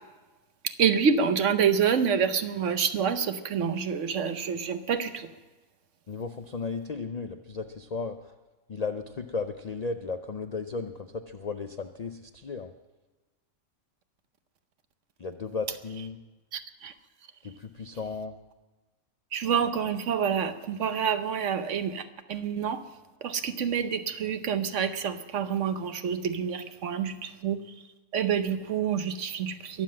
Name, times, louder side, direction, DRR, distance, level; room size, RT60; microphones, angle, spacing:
voice 1, 0.8-5.3 16.5-16.9 19.3-22.8 23.2-27.6 28.1-29.8, right 7 dB, 60° right, 10 dB, 1.1 m, -27 dB
voice 2, 6.1-8.3 8.7-12.7 15.2-16.2 17.4-18.4, left 4 dB, 70° left, 8 dB, 0.3 m, -35 dB
22.5 x 7.6 x 7.5 m, 1.2 s
omnidirectional pair, 1.5 m